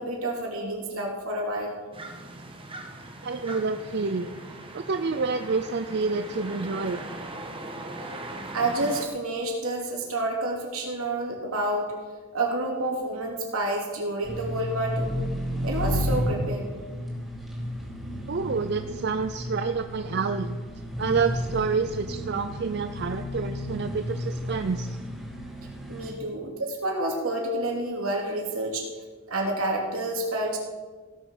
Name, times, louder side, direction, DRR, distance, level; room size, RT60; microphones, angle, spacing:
voice 1, 0.0-1.8 8.5-11.9 12.3-15.2 15.6-16.8 25.9-28.9 29.3-30.6, right 1 dB, 75° right, -1 dB, 2.9 m, -29 dB
sound 1, 1.9-9.1, right 2 dB, 25° right, 1.2 m, -40 dB
voice 2, 3.2-4.4 4.7-7.0 18.3-20.6 21.0-25.0, right 4 dB, 50° right, 8 dB, 0.5 m, -28 dB
sound 2, 14.2-26.1, equal, ahead, 2.6 m, -32 dB
16.0 x 6.9 x 6.5 m, 1.4 s
head